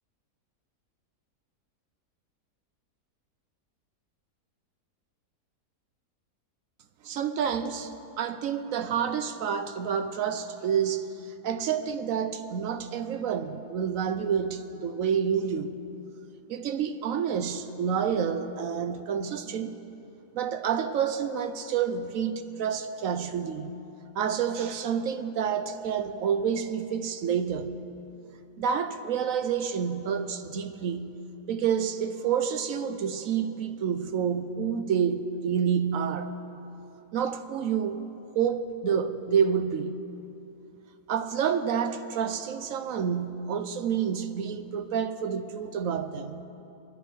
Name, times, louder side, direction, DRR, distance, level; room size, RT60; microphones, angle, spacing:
voice 1, 7.0-15.7 16.5-19.8 20.3-23.7 24.1-27.7 28.6-31.1 31.5-36.3 37.1-38.0 38.3-39.9 41.1-46.4, right 7 dB, 65° right, 0.9 m, -28 dB
26.0 x 10.0 x 3.1 m
omnidirectional pair, 1.7 m